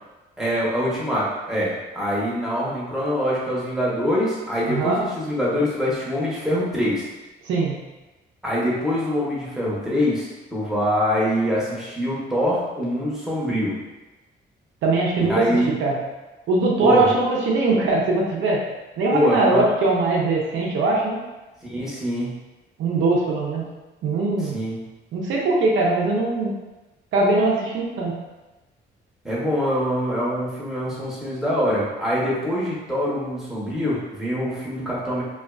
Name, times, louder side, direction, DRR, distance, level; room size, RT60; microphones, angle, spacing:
voice 1, 0.4-7.1 8.4-13.8 15.2-15.7 16.8-17.1 19.1-19.7 21.6-22.4 24.4-24.8 29.2-35.2, equal, ahead, -7 dB, 0.8 m, -24 dB
voice 2, 4.7-5.0 7.4-7.8 14.8-16.0 16.5-18.6 19.0-21.2 22.8-23.7 24.0-24.6 25.1-26.5 27.1-28.2, right 3 dB, 80° right, -3 dB, 0.6 m, -21 dB
2.4 x 2.3 x 2.2 m, 1.1 s
cardioid pair, 90°, 20 cm